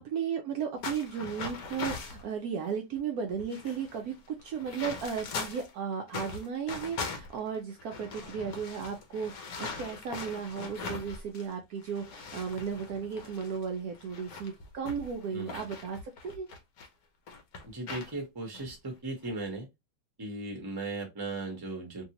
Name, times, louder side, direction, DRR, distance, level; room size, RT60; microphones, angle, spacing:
voice 1, 0.0-16.5, right 6 dB, 70° right, 1.0 m, -35 dB
sound 1, 0.8-2.2 2.9-3.0 3.3-5.7 6.1-11.5 11.8-16.9 17.3-18.1 18.5-18.7 19.2-19.5, left 4 dB, 60° left, 1.1 m, -41 dB
voice 2, 15.3-15.7 17.7-19.7 20.2-22.0, right 2 dB, 20° right, 0.8 m, -37 dB
3.1 x 2.7 x 2.8 m
omnidirectional pair, 1.9 m